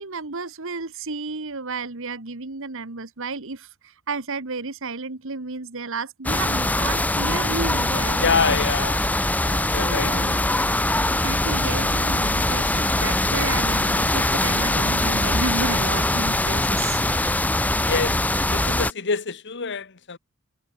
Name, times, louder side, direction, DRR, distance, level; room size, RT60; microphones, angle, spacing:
voice 1, 0.0-3.7 4.1-8.7 9.7-10.4 11.1-17.3, right 3 dB, 65° right, 1.6 m, -32 dB
sound 1, 6.2-18.9, left 1 dB, 5° left, 0.7 m, -22 dB
voice 2, 8.2-9.1 9.4-10.5 17.9-18.2 18.5-20.2, left 5 dB, 55° left, 1.3 m, -26 dB
head